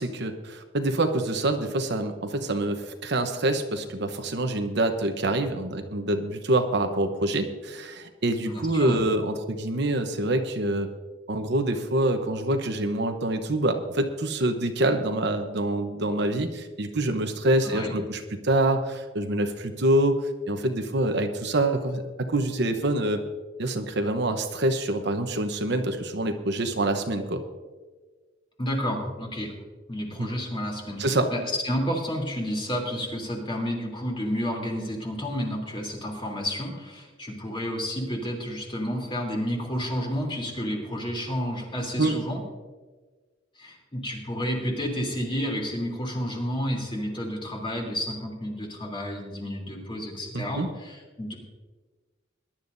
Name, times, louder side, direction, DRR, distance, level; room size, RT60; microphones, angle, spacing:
voice 1, 0.0-10.9 11.3-20.2 20.5-23.2 23.6-27.4 30.2-30.3 31.0-31.3 42.0-42.2 50.3-50.7, right 1 dB, 60° right, 6 dB, 1.0 m, -26 dB
voice 2, 8.4-9.0 17.6-18.0 28.6-29.5 29.9-42.4 43.6-51.3, equal, 25° left, -1 dB, 3.2 m, -31 dB
21.0 x 11.5 x 2.7 m, 1.4 s
head